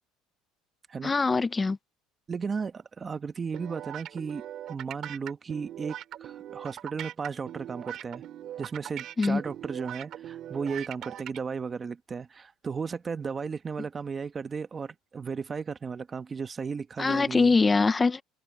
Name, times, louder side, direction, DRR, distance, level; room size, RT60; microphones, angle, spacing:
voice 1, 1.0-1.8 9.2-9.4 17.0-18.2, left 4 dB, 15° left, 0.6 m, -23 dB
voice 2, 2.3-4.4 4.7-8.2 8.6-17.6, right 5 dB, 25° right, 1.2 m, -35 dB
sound 1, 3.5-11.4, right 11 dB, 50° right, 3.3 m, -40 dB
cardioid pair, 130°, 0 cm